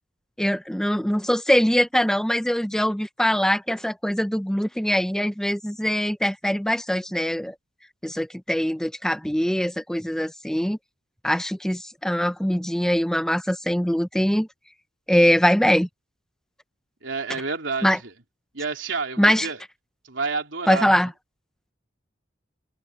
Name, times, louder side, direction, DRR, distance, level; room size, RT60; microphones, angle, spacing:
voice 1, 0.4-7.5 8.0-10.8 11.2-14.5 15.1-15.9 17.8-18.0 19.2-19.5 20.7-21.1, equal, 5° left, 0.7 m, -22 dB
voice 2, 17.0-18.1 18.5-19.6 20.0-20.9, right 4 dB, 80° right, 3.0 m, -29 dB
open air
head